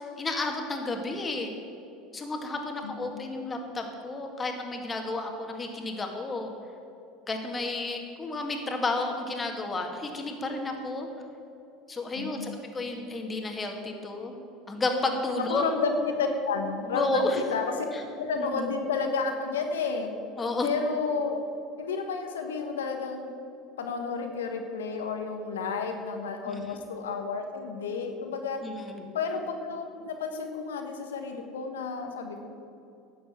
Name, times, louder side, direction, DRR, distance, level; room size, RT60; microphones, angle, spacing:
voice 1, 0.2-1.5 2.1-6.5 7.3-11.1 11.9-12.5 12.7-14.3 14.7-15.7 16.9-17.4 17.9-18.0 18.4-18.7 20.4-20.7 26.5-26.6 28.6-29.1, left 2 dB, 25° left, 3 dB, 2.0 m, -32 dB
voice 2, 2.8-3.3 12.1-12.6 15.4-17.9 18.2-20.1 20.6-21.4 21.8-23.3 23.8-28.6 29.1-32.5, left 4 dB, 90° left, 5 dB, 1.3 m, -31 dB
10.5 x 6.8 x 8.6 m, 2.7 s
hypercardioid pair, 85°, 0 cm